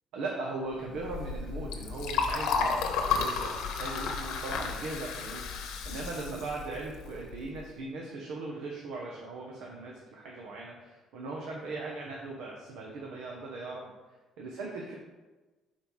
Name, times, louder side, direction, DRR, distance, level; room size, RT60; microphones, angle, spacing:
voice 1, 0.1-2.8 3.1-13.8 14.4-14.9, right 3 dB, 85° right, -2 dB, 0.9 m, -39 dB
Liquid, 0.9-7.6, left 5 dB, 85° left, 0.9 m, -33 dB
4.6 x 4.3 x 5.5 m, 1.2 s
cardioid pair, 135°, 0 cm